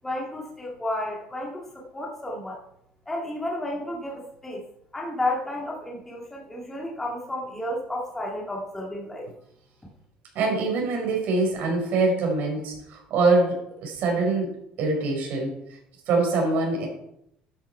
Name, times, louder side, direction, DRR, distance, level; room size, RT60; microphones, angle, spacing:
voice 1, 0.0-2.6 3.1-4.6 4.9-9.3, left 1 dB, 10° left, -3 dB, 2.1 m, -32 dB
voice 2, 10.3-15.6 16.1-16.9, right 3 dB, 60° right, 1 dB, 4.8 m, -24 dB
12.0 x 9.0 x 4.5 m, 0.76 s
cardioid pair, 150°, 3 cm